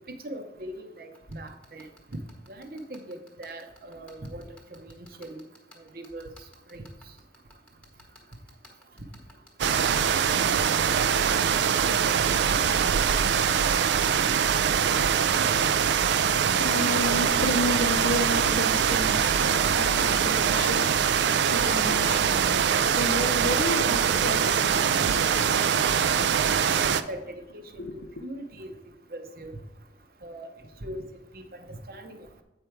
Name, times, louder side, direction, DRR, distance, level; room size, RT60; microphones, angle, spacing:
voice 1, 0.1-2.2 2.5-5.4 5.8-6.3 6.7-6.9 27.1-27.2 27.5-28.7 29.1-29.5 30.2-30.5 30.8-31.1 31.3-32.4, right 1 dB, 55° right, 0.7 m, -40 dB
sound 1, 1.1-16.7, equal, 5° left, 1.0 m, -52 dB
sound 2, 9.6-27.0, right 7 dB, 75° right, 0.4 m, -23 dB
voice 2, 16.3-27.1 27.8-28.2, left 2 dB, 75° left, 0.6 m, -33 dB
8.2 x 5.0 x 4.5 m
head